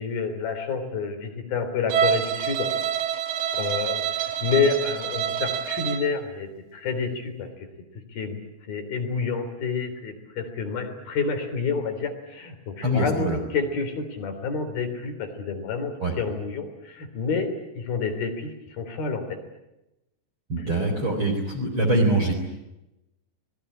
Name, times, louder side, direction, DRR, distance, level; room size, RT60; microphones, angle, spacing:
voice 1, 0.0-2.7 3.5-7.7 8.1-8.4 8.7-19.4 20.6-20.7, left 5 dB, 60° left, 7 dB, 5.2 m, -29 dB
Bowed string instrument, 1.9-6.1, right 9 dB, 60° right, 2.9 m, -27 dB
voice 2, 12.8-13.4 16.0-16.1 20.5-22.4, right 1 dB, 30° right, -1 dB, 4.5 m, -23 dB
26.0 x 20.5 x 9.9 m, 0.95 s
omnidirectional pair, 4.8 m